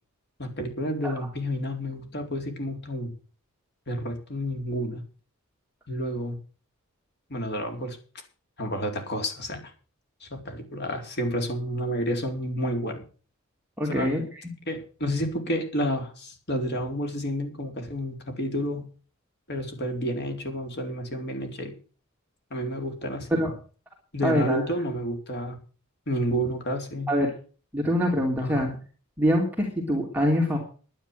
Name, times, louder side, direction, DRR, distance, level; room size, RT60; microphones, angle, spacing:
voice 1, 0.4-3.1 3.9-5.0 5.9-6.4 7.3-8.0 8.6-9.7 10.2-13.0 13.9-14.1 14.7-18.9 19.5-21.7 22.5-23.3 24.1-25.6 26.1-27.1 28.4-28.6, equal, 55° left, 4 dB, 4.2 m, -30 dB
voice 2, 13.8-14.4 23.3-23.5 24.2-24.6 27.1-27.3 27.7-28.7 29.2-30.6, equal, 10° right, 0 dB, 3.0 m, -24 dB
11.0 x 10.5 x 7.8 m, 0.38 s
head